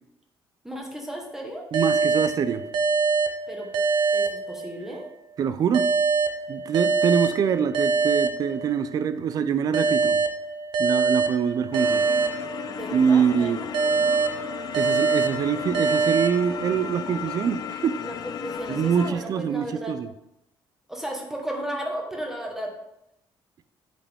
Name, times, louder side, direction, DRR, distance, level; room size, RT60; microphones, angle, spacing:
voice 1, 0.6-1.7 3.5-3.7 4.1-5.1 12.7-13.7 18.0-20.0 20.9-22.7, right 1 dB, 5° right, 0 dB, 1.3 m, -34 dB
voice 2, 1.7-2.6 5.4-5.9 6.5-10.2 10.8-12.0 12.9-13.6 14.7-18.0 18.7-20.1, right 7 dB, 45° right, 13 dB, 0.4 m, -24 dB
sound 1, 1.7-5.1 5.7-9.1 9.7-13.1 13.7-17.1, right 4 dB, 70° right, 0.8 m, -24 dB
sound 2, 11.7-19.1, left 8 dB, 50° left, 0.4 m, -35 dB
8.4 x 5.1 x 3.5 m, 0.85 s
cardioid pair, 155°, 9 cm